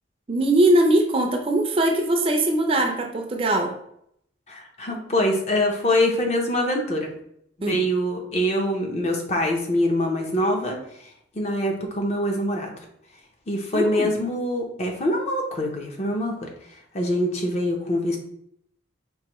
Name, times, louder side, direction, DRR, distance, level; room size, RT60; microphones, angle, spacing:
voice 1, 0.3-3.7 7.6-7.8 13.7-14.1, right 1 dB, 30° right, 3 dB, 0.4 m, -21 dB
voice 2, 4.5-7.1 7.7-11.1 11.3-12.7 13.5-16.5 16.9-18.2, left 1 dB, 35° left, 1 dB, 0.6 m, -24 dB
4.6 x 2.6 x 3.0 m, 0.72 s
head